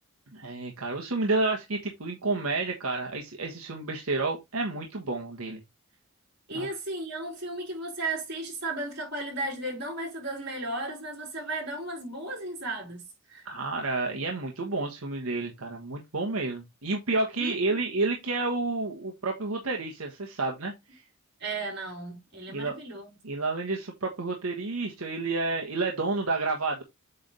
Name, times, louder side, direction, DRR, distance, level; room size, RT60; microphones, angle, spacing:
voice 1, 0.3-5.6 6.5-6.7 13.4-21.0 22.5-22.8 23.2-26.8, right 3 dB, 80° right, 1.2 m, -30 dB
voice 2, 6.5-13.0 13.3-13.4 17.3-17.6 21.4-23.2, right 2 dB, 50° right, 4.3 m, -35 dB
8.1 x 3.4 x 3.9 m
head